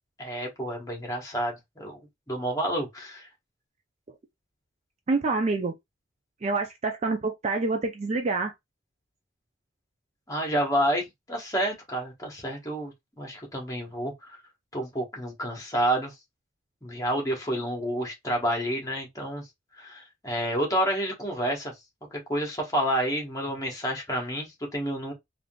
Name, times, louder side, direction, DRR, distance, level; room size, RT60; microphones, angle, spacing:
voice 1, 0.2-2.0 2.3-3.3 10.3-14.4 14.7-16.1 16.8-19.4 19.8-21.7 22.1-25.1, equal, 15° left, 1.1 m, -29 dB
voice 2, 5.1-5.8 6.4-8.5, right 3 dB, 35° right, 0.4 m, -27 dB
3.5 x 2.5 x 2.2 m
head